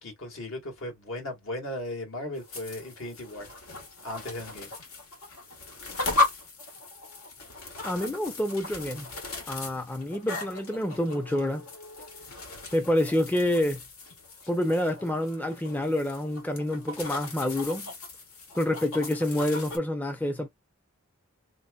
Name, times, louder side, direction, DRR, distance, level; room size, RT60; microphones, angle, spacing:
voice 1, 0.0-3.5 4.0-4.7, left 1 dB, 65° left, 1.5 m, -37 dB
sound 1, 2.3-19.8, left 2 dB, 85° left, 1.5 m, -36 dB
voice 2, 7.8-9.1 9.5-11.6 12.7-13.8 14.5-17.9 18.5-20.5, left 1 dB, 10° left, 0.4 m, -28 dB
3.7 x 2.8 x 2.3 m
head